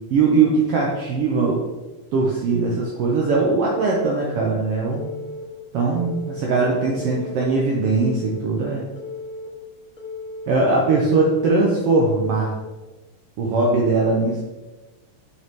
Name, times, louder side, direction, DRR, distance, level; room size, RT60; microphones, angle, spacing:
voice 1, 0.1-1.6 2.1-5.1 5.7-8.8 10.5-12.5 13.4-14.4, right 3 dB, 75° right, -2 dB, 1.3 m, -20 dB
Telephone, 4.9-5.4 5.9-6.4 6.9-7.5 7.9-8.5 9.0-9.5 10.0-10.5 11.0-11.5 12.0-12.5, left 3 dB, 90° left, 0.7 m, -35 dB
6.5 x 4.5 x 3.6 m, 1.1 s
omnidirectional pair, 3.6 m